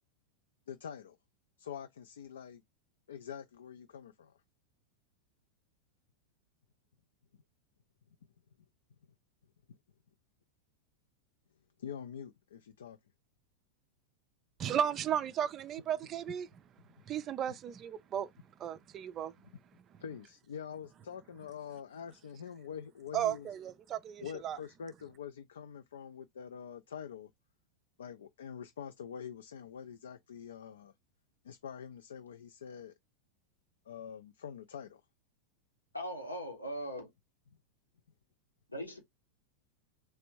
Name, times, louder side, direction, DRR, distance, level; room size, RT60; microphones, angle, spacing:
voice 1, 0.7-1.2 1.6-2.6 3.1-4.4 9.7-9.8 11.8-13.0 20.0-23.5 24.2-27.3 28.0-30.9 31.4-32.9 33.9-35.0, left 8 dB, 65° left, 0.3 m, -45 dB
voice 2, 14.6-16.5 17.1-18.3 18.6-19.3 23.1-24.6, right 9 dB, 30° right, 0.4 m, -34 dB
voice 3, 35.9-37.1 38.7-39.0, equal, 85° left, 1.1 m, -39 dB
3.3 x 3.1 x 2.9 m
figure-of-eight pair, 90°, 0 cm